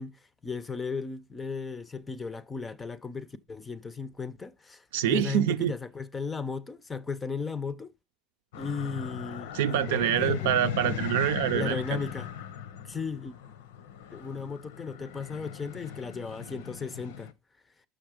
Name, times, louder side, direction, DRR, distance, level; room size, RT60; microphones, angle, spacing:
voice 1, 0.0-7.9 8.6-10.5 11.5-12.3 12.9-13.4 14.1-17.3, left 5 dB, 15° left, 0.5 m, -36 dB
voice 2, 4.9-5.8 9.5-12.0, right 11 dB, 80° right, 0.6 m, -26 dB
sound 1, 8.5-17.3, left 9 dB, 85° left, 0.9 m, -38 dB
6.5 x 6.3 x 4.9 m
supercardioid pair, 150°, 0 cm